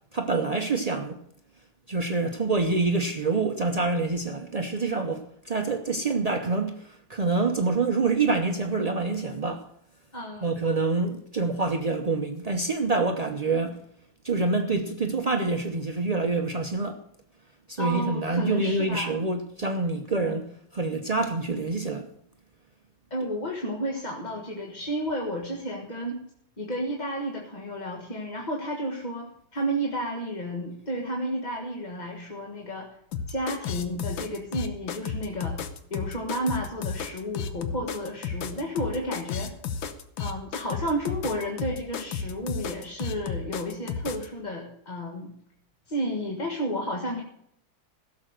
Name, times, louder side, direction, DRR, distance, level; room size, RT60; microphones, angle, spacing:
voice 1, 0.1-1.2 1.9-9.7 10.4-13.8 14.2-17.0 17.7-22.1, right 3 dB, 65° right, 0.3 m, -26 dB
voice 2, 10.1-10.5 17.8-19.2 23.1-26.2 26.6-32.9 33.3-35.6 35.9-39.5 40.2-45.3 45.9-47.2, equal, 25° left, 1.5 m, -32 dB
sound 1, 33.1-44.3, left 6 dB, 80° left, 1.7 m, -33 dB
16.5 x 7.2 x 6.6 m
omnidirectional pair, 2.1 m